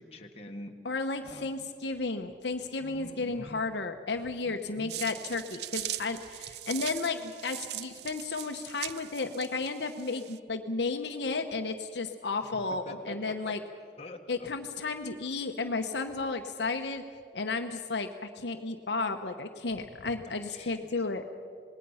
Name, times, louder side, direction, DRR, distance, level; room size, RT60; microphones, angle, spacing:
voice 1, 0.0-0.8 1.2-1.6 2.8-3.6 4.4-5.0 12.5-12.6 12.9-13.6 14.0-14.5 20.3-21.0, left 1 dB, 35° left, 2 dB, 1.5 m, -45 dB
voice 2, 0.8-13.6 14.3-17.0 17.3-18.1 18.4-21.2, left 3 dB, 70° left, 5 dB, 1.0 m, -33 dB
sound 1, 4.9-10.4, right 14 dB, 60° right, 0.5 m, -40 dB
26.5 x 20.0 x 5.7 m, 2.2 s
head